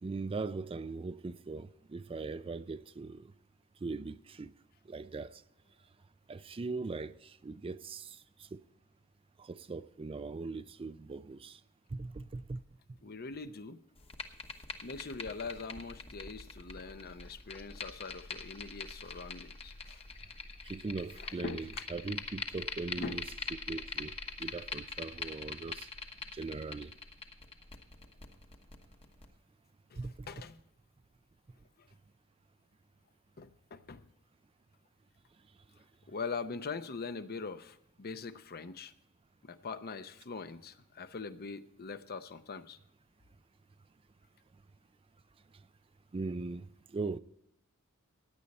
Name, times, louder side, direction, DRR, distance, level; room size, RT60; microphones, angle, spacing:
voice 1, 0.0-3.3 3.8-4.5 4.9-5.4 6.3-8.6 9.4-11.6 11.9-12.6 20.6-23.2 23.7-25.9 26.3-26.9 30.0-30.3 46.1-47.2, right 3 dB, 25° right, 0.4 m, -40 dB
voice 2, 13.0-13.8 14.8-20.0 21.2-21.9 23.0-23.2 29.9-30.6 31.8-31.9 33.4-34.0 36.1-38.9 39.4-42.8, left 4 dB, 45° left, 0.7 m, -42 dB
sound 1, 14.0-29.2, left 4 dB, 25° left, 1.1 m, -44 dB
16.0 x 10.0 x 4.2 m
head